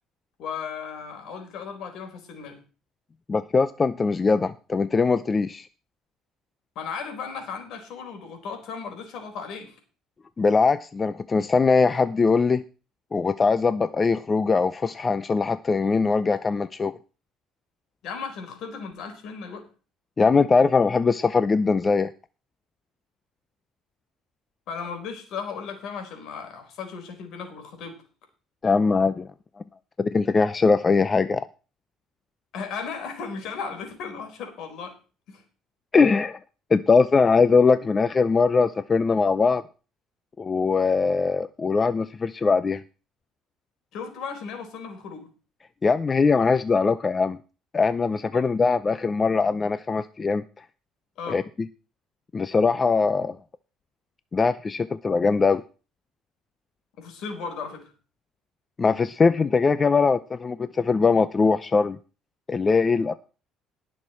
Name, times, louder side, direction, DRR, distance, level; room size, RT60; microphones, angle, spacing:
voice 1, 0.4-2.6 6.8-9.8 18.0-19.6 24.7-28.0 32.5-35.0 35.3-35.4 43.9-45.3 48.3-48.4 51.2-51.4 57.0-57.9, left 5 dB, 70° left, 5 dB, 4.2 m, -36 dB
voice 2, 3.3-5.7 10.4-12.6 13.1-16.9 20.2-22.1 28.6-29.3 30.0-31.4 35.9-36.4 36.7-39.6 40.4-42.8 45.8-47.4 47.7-50.4 51.3-51.4 52.3-53.4 54.3-55.6 58.8-62.0 62.5-63.2, left 4 dB, 30° left, 14 dB, 0.6 m, -21 dB
18.5 x 6.6 x 4.4 m, 0.35 s
supercardioid pair, 85°, 0 cm